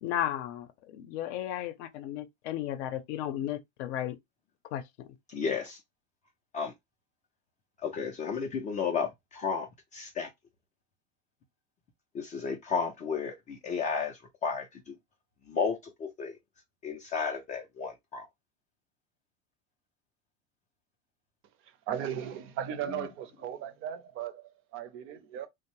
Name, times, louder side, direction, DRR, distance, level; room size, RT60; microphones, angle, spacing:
voice 1, 0.0-4.2 4.7-5.1, left 11 dB, 65° left, 0.6 m, -34 dB
voice 2, 5.3-5.8 6.5-6.7 7.8-10.3 12.1-14.9 15.5-16.4 16.8-18.3, left 5 dB, 20° left, 0.3 m, -33 dB
voice 3, 21.9-25.5, right 10 dB, 35° right, 0.5 m, -37 dB
2.6 x 2.0 x 2.9 m
supercardioid pair, 125°, 36 cm